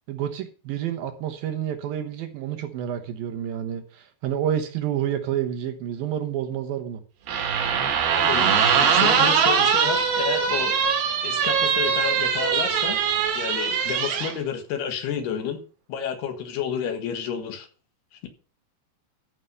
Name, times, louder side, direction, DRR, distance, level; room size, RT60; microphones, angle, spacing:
voice 1, 0.1-7.0, right 10 dB, 70° right, 2.6 m, -29 dB
sound 1, 7.3-14.3, right 7 dB, 90° right, 4.2 m, -22 dB
voice 2, 8.1-10.8 11.2-13.0 13.3-15.6 15.9-17.7, left 7 dB, 75° left, 3.5 m, -30 dB
14.5 x 5.8 x 6.7 m
omnidirectional pair, 4.8 m